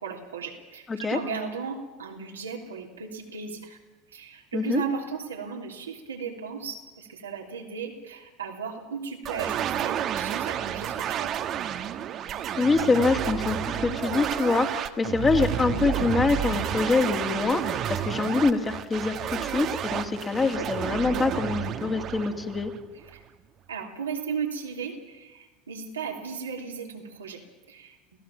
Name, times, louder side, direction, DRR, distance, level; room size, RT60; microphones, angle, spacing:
voice 1, 0.0-3.8 4.1-11.3 23.1-23.2 23.7-27.4 27.7-28.0, right 6 dB, 85° right, 1 dB, 3.3 m, -35 dB
voice 2, 0.9-1.2 4.5-4.8 12.6-22.7, left 4 dB, 25° left, 5 dB, 2.7 m, -25 dB
sound 1, 9.2-23.1, right 10 dB, 45° right, 1.4 m, -30 dB
28.5 x 16.5 x 7.4 m, 1.1 s
hypercardioid pair, 75°, 0 cm